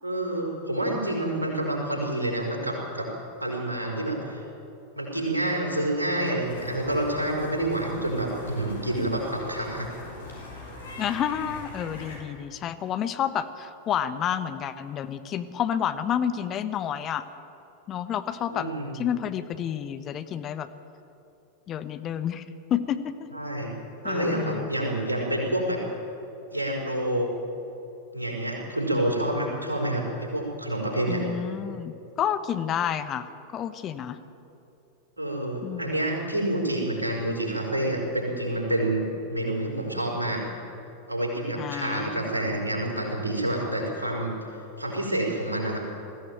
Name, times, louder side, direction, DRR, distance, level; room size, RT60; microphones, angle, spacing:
voice 1, 0.0-3.1 3.4-4.4 4.9-9.9 18.5-18.9 23.3-23.7 24.0-25.8 26.5-27.3 28.1-31.2 35.2-40.5 41.1-44.4 44.8-45.8, right 1 dB, 80° right, -1 dB, 5.2 m, -28 dB
sound 1, 6.4-12.2, left 2 dB, 70° left, 6.1 m, -42 dB
voice 2, 11.0-17.2 17.9-20.7 21.7-23.3 24.0-24.7 31.1-34.2 35.6-36.1 41.6-42.2, left 9 dB, 30° left, 11 dB, 1.1 m, -30 dB
20.0 x 15.5 x 9.1 m, 2.9 s
figure-of-eight pair, 90°, 0 cm